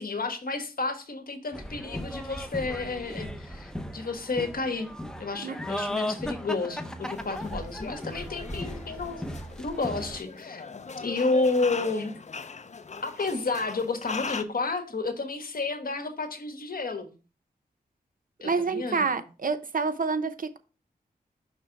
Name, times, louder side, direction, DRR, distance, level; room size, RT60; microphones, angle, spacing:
voice 1, 0.0-4.9 5.2-9.3 9.6-10.6 11.0-12.1 13.0-17.1 18.4-19.2, left 3 dB, 60° left, 6 dB, 1.4 m, -31 dB
sound 1, 1.5-10.2, left 1 dB, 5° left, 0.8 m, -36 dB
sound 2, 7.0-14.4, left 4 dB, 45° left, 0.6 m, -40 dB
voice 2, 18.4-20.6, right 4 dB, 60° right, 11 dB, 0.7 m, -28 dB
6.1 x 3.3 x 5.6 m, 0.33 s
cardioid pair, 50°, 17 cm